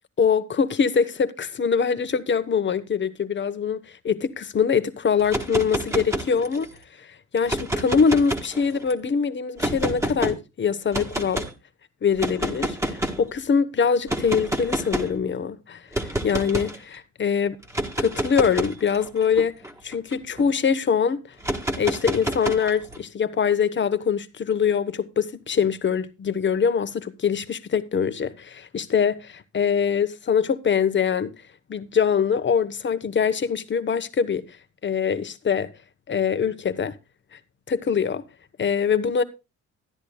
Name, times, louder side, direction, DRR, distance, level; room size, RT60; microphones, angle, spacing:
voice 1, 0.2-6.7 7.0-7.1 7.3-11.5 12.0-17.6 18.0-19.6 19.8-21.2 21.8-31.3 31.7-34.4 34.8-35.7 36.1-36.9 37.7-38.2 38.6-39.2, left 6 dB, 40° left, 1.0 m, -23 dB
sound 1, 5.2-6.8 7.4-8.9 9.6-10.4 10.9-11.5 12.2-13.3 14.1-15.2 15.9-16.8 17.6-20.5 21.4-23.0, right 1 dB, 10° right, 1.6 m, -28 dB
14.0 x 10.5 x 2.3 m
cardioid pair, 90°, 30 cm